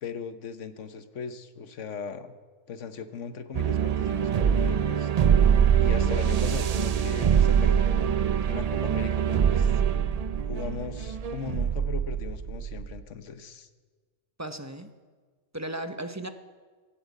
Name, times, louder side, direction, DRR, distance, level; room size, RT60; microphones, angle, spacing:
voice 1, 0.0-2.4 2.7-5.1 5.8-7.9 8.5-9.8 10.5-13.7, left 6 dB, 75° left, 10 dB, 1.3 m, -38 dB
sound 1, 3.5-13.0, right 8 dB, 55° right, 0.4 m, -24 dB
voice 2, 14.4-14.9 15.5-16.3, right 1 dB, 15° right, 7 dB, 0.7 m, -35 dB
17.0 x 9.0 x 8.2 m, 1.5 s
omnidirectional pair, 1.3 m